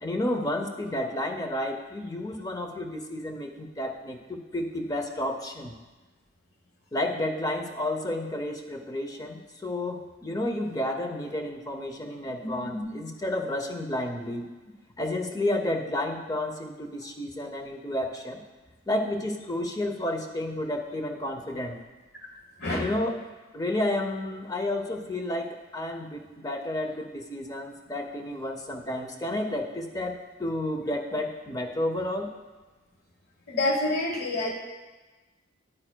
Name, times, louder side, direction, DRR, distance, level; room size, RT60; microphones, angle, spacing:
voice 1, 0.0-5.7 6.9-14.5 15.0-18.4 18.9-21.8 22.7-23.3 23.5-32.3, left 1 dB, 20° left, 4 dB, 0.6 m, -31 dB
voice 2, 12.4-13.0 22.6-22.9 33.5-34.5, left 2 dB, 55° left, 1 dB, 1.1 m, -28 dB
9.9 x 8.8 x 2.2 m, 1.2 s
head